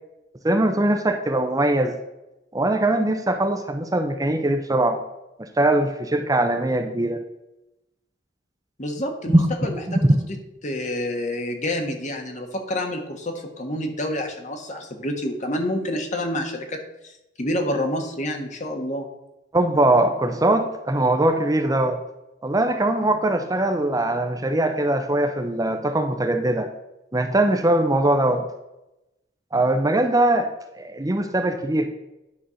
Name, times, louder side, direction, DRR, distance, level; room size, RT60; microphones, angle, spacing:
voice 1, 0.4-2.0 2.5-5.0 5.4-7.2 9.3-9.5 9.9-10.2 19.5-22.0 22.4-26.7 27.1-28.4 29.5-30.5 30.8-31.9, right 1 dB, 20° right, 6 dB, 0.7 m, -21 dB
voice 2, 8.8-9.8 10.3-10.4 10.6-16.8 17.4-19.1, left 1 dB, 40° left, 4 dB, 1.4 m, -28 dB
10.5 x 4.3 x 6.3 m, 0.92 s
head